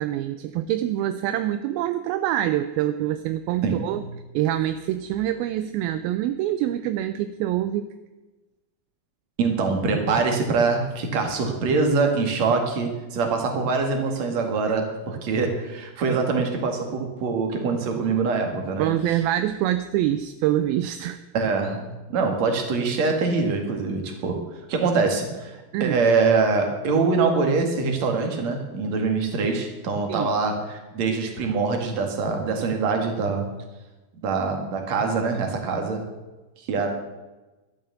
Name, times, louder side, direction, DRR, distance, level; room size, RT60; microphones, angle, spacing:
voice 1, 0.0-4.0 4.3-7.9 18.8-21.2 25.7-26.0 30.1-30.3, right 12 dB, 80° right, 11 dB, 2.4 m, -25 dB
voice 2, 3.6-4.1 9.4-19.2 21.3-24.4 24.7-33.5 34.2-36.1 36.6-36.9, right 4 dB, 50° right, 3 dB, 3.0 m, -24 dB
12.5 x 9.3 x 8.0 m, 1.1 s
omnidirectional pair, 4.4 m